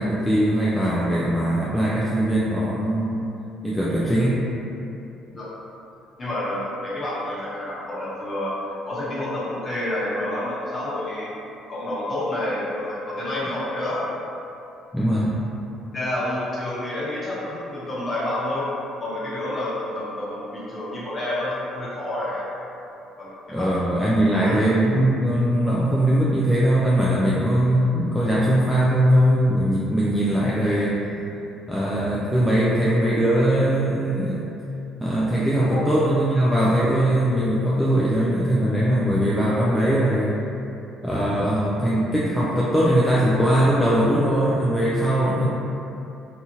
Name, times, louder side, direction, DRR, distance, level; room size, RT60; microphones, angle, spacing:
voice 1, 0.0-3.2 3.6-4.4 14.9-15.3 23.5-31.0 31.7-34.4 35.0-40.3 41.0-45.5, right 1 dB, ahead, -8 dB, 0.3 m, -20 dB
voice 2, 6.2-11.3 11.7-14.1 15.9-18.7 19.0-22.4 23.2-23.7 24.3-24.6 35.7-35.8, left 1 dB, 25° left, -8 dB, 0.8 m, -29 dB
2.7 x 2.4 x 2.8 m, 2.8 s
cardioid pair, 125°, 0 cm